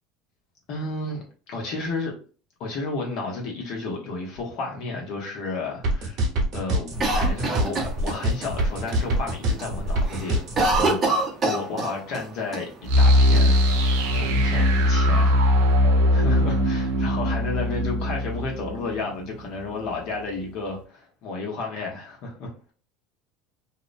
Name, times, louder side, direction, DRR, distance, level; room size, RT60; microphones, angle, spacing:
voice 1, 0.7-2.1 2.6-6.2 6.5-10.4 10.7-11.0 11.4-13.6 14.2-15.5 16.1-22.5, left 3 dB, 60° left, 0 dB, 0.9 m, -32 dB
sound 1, 5.8-10.9, right 1 dB, 55° right, 1.0 m, -24 dB
Cough, 7.0-8.5 8.9-9.0 9.3-9.7 10.0-12.2 12.5-12.6 13.3-14.1, right 2 dB, 30° right, 0.7 m, -25 dB
sound 2, 12.9-19.7, left 1 dB, 85° right, 0.5 m, -20 dB
2.7 x 2.1 x 2.5 m, 0.37 s
supercardioid pair, 130°, 0 cm